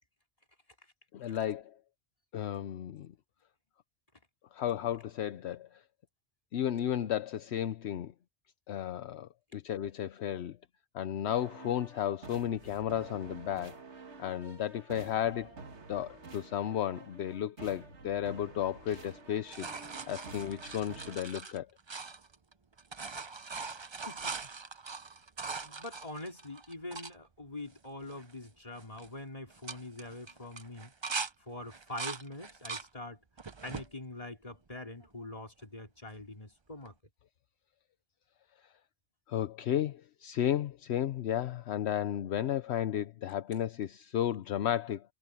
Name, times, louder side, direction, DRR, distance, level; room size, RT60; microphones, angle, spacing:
voice 1, 1.1-1.7 2.3-3.1 4.5-5.7 6.5-8.1 8.7-10.5 10.9-13.8 14.2-15.5 15.9-19.7 20.1-21.7 39.3-45.0, left 10 dB, 75° left, 0.9 m, -33 dB
sound 1, 11.2-21.2, right 3 dB, 85° right, 2.2 m, -50 dB
sound 2, 18.9-22.5 22.8-27.1 27.7-27.8 28.0-28.5 28.8-29.1 29.5-31.3 31.7-32.9 33.4-33.9 34.5-35.2 36.9-37.0, right 4 dB, 30° right, 0.7 m, -41 dB
voice 2, 24.1-24.4 25.6-30.9 31.5-33.2 33.6-37.0, left 2 dB, 30° left, 3.0 m, -44 dB
omnidirectional pair, 1.1 m